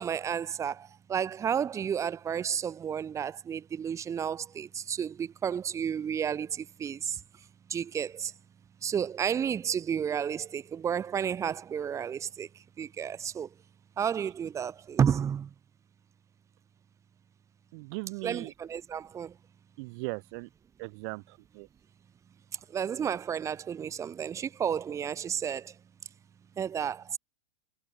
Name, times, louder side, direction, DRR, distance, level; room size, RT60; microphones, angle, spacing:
voice 1, 0.0-7.2 7.7-8.3 8.8-12.5 12.8-13.5 14.0-15.5 18.2-19.3 22.7-25.7 26.6-27.2, right 8 dB, 15° right, 1.5 m, -31 dB
voice 2, 17.7-18.5 19.8-20.5 20.8-21.7, right 32 dB, 45° right, 1.5 m, -38 dB
supercardioid pair, 140°, 17 cm